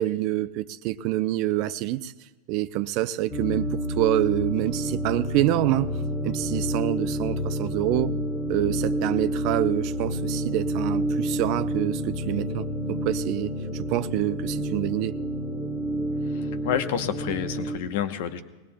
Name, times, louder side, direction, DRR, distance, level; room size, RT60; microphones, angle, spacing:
voice 1, 0.0-2.1 2.5-6.0 6.2-8.1 8.5-15.1, right 15 dB, 50° right, 14 dB, 0.5 m, -26 dB
sound 1, 3.3-17.8, right 1 dB, 20° left, 1.8 m, -29 dB
voice 2, 16.3-18.4, left 9 dB, 55° left, 10 dB, 0.9 m, -29 dB
22.0 x 19.5 x 2.3 m, 1.3 s
figure-of-eight pair, 90°, 0 cm